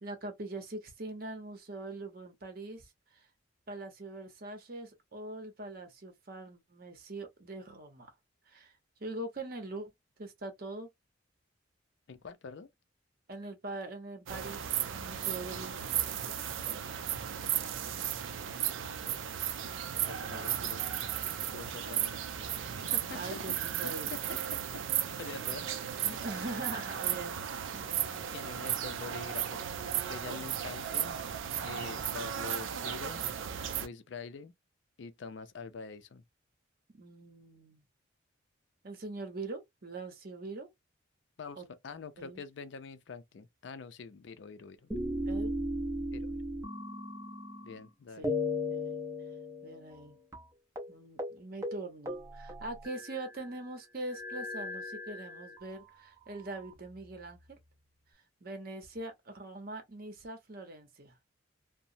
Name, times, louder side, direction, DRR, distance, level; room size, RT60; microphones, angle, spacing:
voice 1, 0.0-3.3 3.7-8.1 8.5-8.7 9.0-9.9 10.2-10.9 13.3-15.8 20.3-20.8 21.8-22.3 22.7-24.2 26.2-27.9 30.3-30.6 36.9-37.8 38.8-40.7 41.6-41.7 42.2-42.4 45.3-45.5 48.2-48.3 48.7-49.0 49.6-50.2 50.9-57.6 58.4-61.2, right 2 dB, 50° right, 0.8 m, -43 dB
voice 2, 12.1-12.7 16.6-17.7 19.5-20.8 21.4-22.2 22.9-23.4 23.8-24.8 25.2-26.2 26.4-26.5 28.3-29.6 30.1-31.2 31.7-33.3 33.8-34.5 35.0-36.2 41.4-44.9 46.1-46.4 47.6-48.3, left 5 dB, 65° left, 0.4 m, -46 dB
sound 1, 14.3-33.9, right 9 dB, 80° right, 0.4 m, -35 dB
sound 2, 44.9-47.9 48.2-50.1 50.3-50.4 50.8-50.9 51.2-51.4 51.6-53.4 54.1-55.7 56.4-57.3, left 1 dB, 15° right, 0.5 m, -37 dB
2.9 x 2.0 x 2.5 m
head